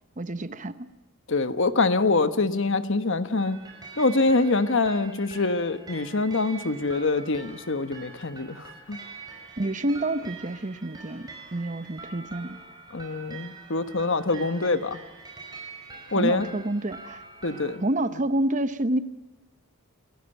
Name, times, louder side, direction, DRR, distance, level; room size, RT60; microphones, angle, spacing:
voice 1, 0.2-0.9 9.6-12.6 16.1-17.2 17.8-19.0, right 1 dB, 35° right, 12 dB, 0.9 m, -28 dB
voice 2, 1.3-3.6 4.0-9.0 12.9-15.0 16.1-16.5 17.4-17.8, left 3 dB, 55° left, 11 dB, 1.3 m, -25 dB
sound 1, 3.4-17.8, right 4 dB, 20° right, 5.6 m, -44 dB
28.0 x 15.5 x 9.0 m, 1.0 s
head